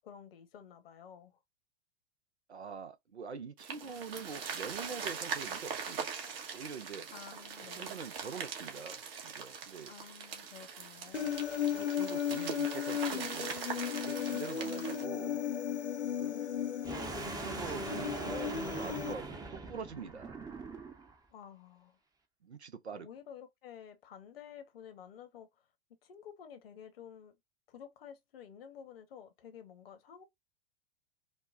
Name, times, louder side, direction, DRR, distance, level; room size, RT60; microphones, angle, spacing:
voice 1, 0.0-1.4 7.1-8.0 9.9-11.5 16.3-16.8 21.3-22.0 22.9-25.7 26.0-27.4 27.7-30.2, left 8 dB, 60° left, 1.2 m, -52 dB
voice 2, 2.5-6.1 6.5-7.1 7.7-9.9 11.2-13.6 13.9-15.4 16.1-16.3 17.2-20.4 22.4-23.1, right 5 dB, 85° right, 0.8 m, -45 dB
sound 1, 3.6-15.0, right 6 dB, 60° right, 1.3 m, -41 dB
Human voice, 11.1-19.1, left 8 dB, 90° left, 0.7 m, -35 dB
sound 2, 16.8-21.1, right 3 dB, 10° right, 0.7 m, -42 dB
5.3 x 2.2 x 2.5 m
figure-of-eight pair, 95°, 32 cm